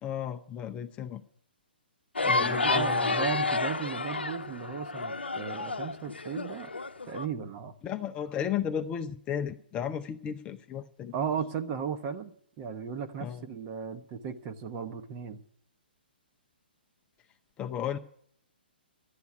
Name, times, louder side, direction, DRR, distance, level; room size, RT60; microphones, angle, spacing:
voice 1, 0.0-1.2 2.3-3.3 7.8-11.1 13.2-13.4 17.6-18.0, left 9 dB, 20° left, 0.6 m, -34 dB
sound 1, 2.2-7.3, left 3 dB, 80° left, 0.8 m, -30 dB
voice 2, 2.2-6.7 7.1-7.7 11.1-15.4, right 7 dB, 30° right, 1.0 m, -36 dB
12.0 x 8.3 x 9.5 m
figure-of-eight pair, 125°, 6 cm